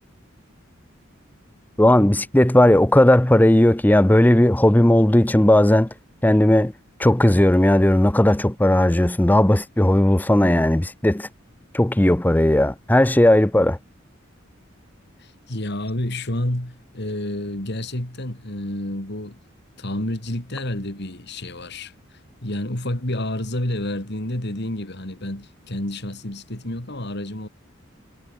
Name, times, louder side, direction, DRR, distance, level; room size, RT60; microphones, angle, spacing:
voice 1, 1.8-5.9 6.2-6.7 7.0-11.3 11.7-13.8, left 1 dB, 10° left, 0.7 m, -16 dB
voice 2, 15.2-19.4 19.8-21.9 22.4-27.5, left 1 dB, 55° left, 3.3 m, -29 dB
head